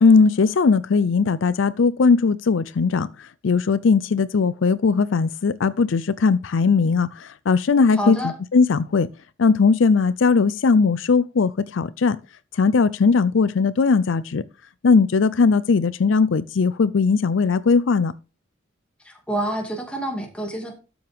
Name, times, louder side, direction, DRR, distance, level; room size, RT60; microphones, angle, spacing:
voice 1, 0.0-8.2 8.5-9.1 9.4-12.2 12.5-14.4 14.8-18.1, left 4 dB, 75° left, 0.5 m, -19 dB
voice 2, 8.0-8.3 19.0-20.7, right 1 dB, 5° left, 2.3 m, -27 dB
12.5 x 7.1 x 3.5 m
head